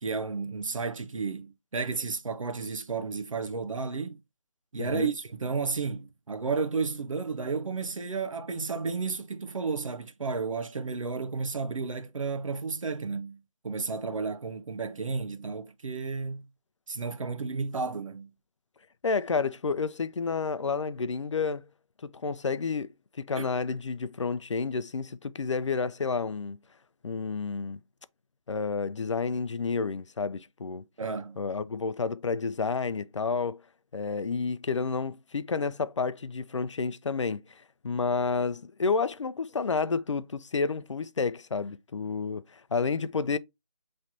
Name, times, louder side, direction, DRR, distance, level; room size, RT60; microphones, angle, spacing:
voice 1, 0.0-4.2 4.7-13.4 13.6-16.5 16.9-18.3 23.4-23.6 31.0-31.4, right 4 dB, 85° right, 0.7 m, -32 dB
voice 2, 4.8-5.1 19.0-21.6 22.0-22.9 23.3-26.6 27.0-27.8 28.5-30.8 31.4-33.6 33.9-37.4 37.8-43.4, left 4 dB, 65° left, 0.5 m, -30 dB
5.8 x 3.2 x 2.7 m
figure-of-eight pair, 170°, 16 cm